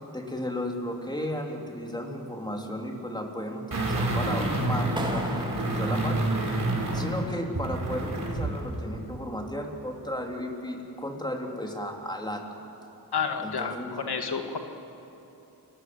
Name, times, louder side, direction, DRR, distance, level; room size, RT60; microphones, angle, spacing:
voice 1, 0.1-6.2 6.9-12.4 13.4-14.0, equal, 10° left, 1 dB, 3.7 m, -34 dB
sound 1, 3.7-8.6 8.9-9.0, right 2 dB, 55° right, 4.8 m, -28 dB
Clapping, 5.0-7.0, right 1 dB, 10° right, 2.9 m, -37 dB
voice 2, 13.1-14.6, left 6 dB, 80° left, 5 dB, 2.1 m, -30 dB
29.0 x 20.0 x 8.1 m, 3.0 s
wide cardioid pair, 70°, 38 cm